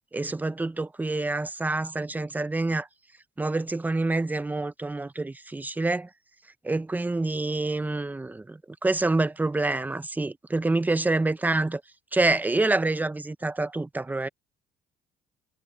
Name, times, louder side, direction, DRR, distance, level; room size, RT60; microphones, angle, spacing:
voice 1, 0.1-2.9 3.4-6.1 6.6-11.8 12.1-14.3, right 2 dB, 10° right, 0.6 m, -27 dB
cardioid pair, 110°, 17 cm